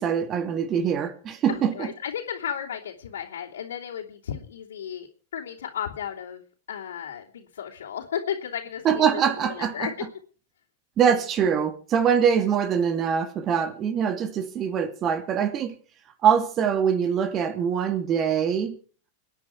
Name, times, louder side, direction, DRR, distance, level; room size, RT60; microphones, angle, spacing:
voice 1, 0.0-1.9 8.8-9.9 11.0-15.8 16.2-18.8, right 7 dB, 35° right, 2.7 m, -23 dB
voice 2, 1.5-5.1 5.3-6.4 6.7-9.2 9.5-9.9, left 8 dB, 80° left, 3.1 m, -34 dB
27.5 x 10.5 x 4.7 m
hypercardioid pair, 110°, 0 cm